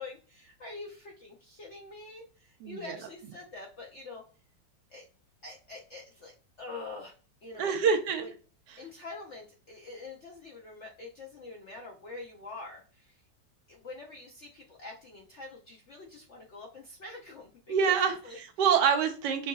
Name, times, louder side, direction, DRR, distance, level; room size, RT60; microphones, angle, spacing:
voice 1, 0.0-4.2 4.9-5.1 5.4-6.3 6.6-7.1 7.4-8.3 8.8-13.2 13.7-17.5 17.8-17.9 18.2-18.4, left 3 dB, 60° left, -1 dB, 0.7 m, -45 dB
voice 2, 2.6-3.0 7.5-8.3 17.7-19.5, right 7 dB, 70° right, 5 dB, 1.2 m, -26 dB
5.7 x 2.6 x 2.3 m, 0.38 s
omnidirectional pair, 2.0 m